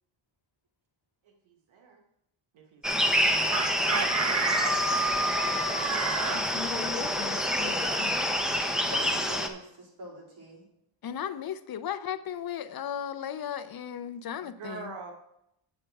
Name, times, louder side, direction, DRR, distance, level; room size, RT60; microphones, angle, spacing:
voice 1, 1.7-2.0 2.5-3.3 14.4-15.1, right 4 dB, 85° right, 2 dB, 1.4 m, -44 dB
sound 1, 2.8-9.5, equal, ahead, 0.8 m, -27 dB
Chicken rooster, 3.5-6.4, right 3 dB, 35° right, 0.9 m, -29 dB
voice 2, 3.8-4.5 8.8-10.7, right 1 dB, 55° right, -4 dB, 3.8 m, -43 dB
voice 3, 6.3-8.2 11.0-15.0, left 9 dB, 50° left, 13 dB, 0.5 m, -36 dB
8.3 x 8.0 x 4.6 m, 0.80 s
wide cardioid pair, 125°, 47 cm